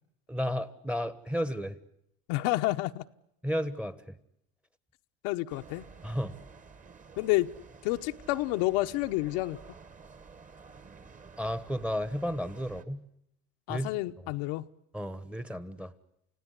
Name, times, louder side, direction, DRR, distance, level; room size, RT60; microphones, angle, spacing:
voice 1, 0.3-1.8 3.4-4.2 6.0-6.3 11.4-13.0 13.7-13.9 14.9-15.9, equal, 5° right, 1.2 m, -33 dB
voice 2, 2.3-3.0 5.2-5.9 7.2-7.5 7.8-9.6 13.7-14.7, left 18 dB, 70° left, 1.0 m, -29 dB
sound 1, 5.5-12.8, right 5 dB, 25° right, 1.7 m, -51 dB
29.5 x 17.0 x 9.9 m
supercardioid pair, 120°, 30 cm